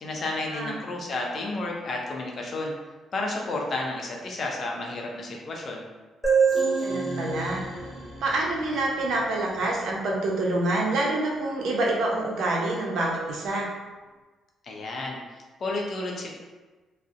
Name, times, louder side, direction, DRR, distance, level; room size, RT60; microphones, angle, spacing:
voice 1, 0.0-2.7 3.1-5.8 14.6-16.3, left 2 dB, 50° left, -1 dB, 0.5 m, -31 dB
sound 1, 6.2-9.8, right 5 dB, 5° left, 0.7 m, -27 dB
voice 2, 6.8-7.6 8.2-13.7, right 2 dB, 75° right, -2 dB, 0.5 m, -27 dB
2.4 x 2.0 x 2.5 m, 1.3 s
cardioid pair, 90°, 0 cm